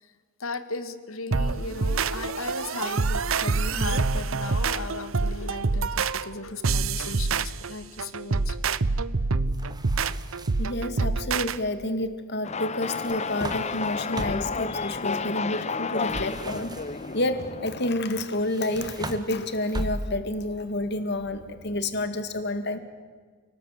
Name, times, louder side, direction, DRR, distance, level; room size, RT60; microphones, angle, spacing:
voice 1, 0.4-8.6, left 3 dB, 85° left, 11 dB, 1.9 m, -36 dB
sound 1, 1.3-11.6, right 4 dB, 75° right, 0.8 m, -26 dB
sound 2, 9.5-10.8 12.8-14.7 16.0-17.2 18.4-20.4, right 1 dB, 20° right, 1.6 m, -37 dB
voice 2, 10.6-16.7 17.1-22.8, left 1 dB, 55° left, 9 dB, 2.3 m, -29 dB
sound 3, 12.4-17.9, left 5 dB, 30° left, 0.8 m, -31 dB
29.5 x 19.5 x 9.5 m, 1.5 s
head